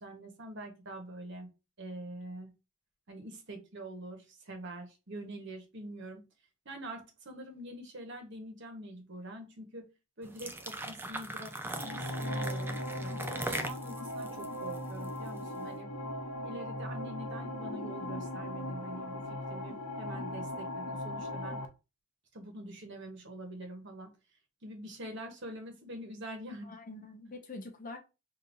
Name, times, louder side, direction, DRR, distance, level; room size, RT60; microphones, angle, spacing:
voice 1, 0.0-1.5 1.8-2.5 3.1-6.2 6.6-9.9 10.2-15.9 16.4-19.2 19.5-21.6 22.3-24.1 24.6-26.8, right 1 dB, 55° right, 1.1 m, -45 dB
sound 1, 10.2-15.5, right 2 dB, 10° right, 0.3 m, -40 dB
sound 2, 11.7-21.7, left 1 dB, 85° left, 0.7 m, -38 dB
voice 2, 13.1-13.5 26.6-28.0, left 2 dB, 40° left, 0.7 m, -45 dB
5.1 x 2.7 x 2.6 m
head